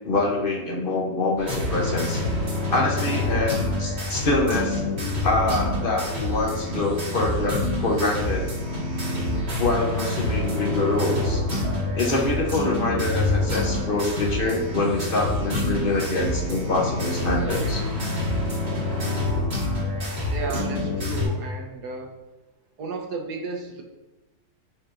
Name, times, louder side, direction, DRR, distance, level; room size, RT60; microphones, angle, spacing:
voice 1, 0.0-2.2 2.7-4.8 5.2-8.5 9.6-11.4 11.9-17.8, left 2 dB, 40° left, 0 dB, 0.9 m, -25 dB
sound 1, 1.4-21.2, left 1 dB, 40° right, 2.1 m, -27 dB
voice 2, 20.3-22.2 22.8-23.8, right 3 dB, 85° right, 2 dB, 1.5 m, -33 dB
9.0 x 4.6 x 2.6 m, 1.1 s
omnidirectional pair, 1.7 m